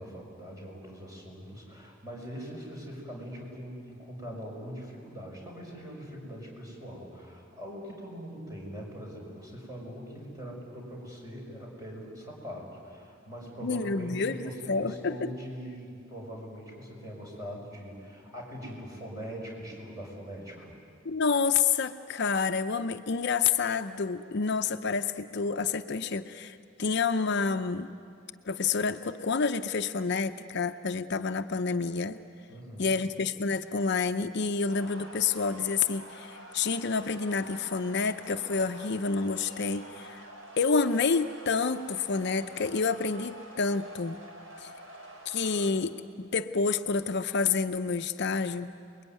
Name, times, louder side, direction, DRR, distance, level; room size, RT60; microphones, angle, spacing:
voice 1, 0.0-20.8 32.5-32.9, equal, 20° right, -1 dB, 6.2 m, -42 dB
voice 2, 13.6-15.1 21.0-27.9 28.4-32.2 32.8-40.2 40.6-44.2 44.6-44.7 45.3-48.7, left 5 dB, 55° left, 9 dB, 0.7 m, -29 dB
sound 1, 34.7-45.7, equal, 80° right, 4.2 m, -47 dB
29.0 x 22.0 x 9.4 m, 2.4 s
head